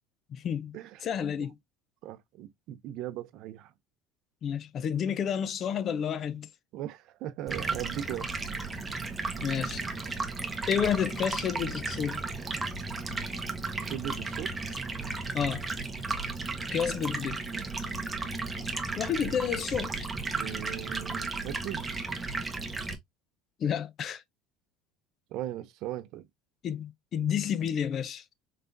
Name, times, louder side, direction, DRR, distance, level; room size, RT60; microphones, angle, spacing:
voice 1, 0.3-1.6 4.4-6.5 9.4-9.8 10.7-12.2 15.3-15.6 16.7-17.4 19.0-20.0 23.6-24.2 26.6-28.2, left 8 dB, 45° left, 0.5 m, -30 dB
voice 2, 2.0-3.7 6.7-8.3 13.7-14.5 17.5-17.7 19.9-20.0 20.3-21.9 25.3-26.3, right 12 dB, 60° right, 0.6 m, -38 dB
Stream, 7.5-22.9, right 3 dB, 15° right, 0.9 m, -34 dB
4.1 x 3.4 x 2.5 m
supercardioid pair, 115°, 0 cm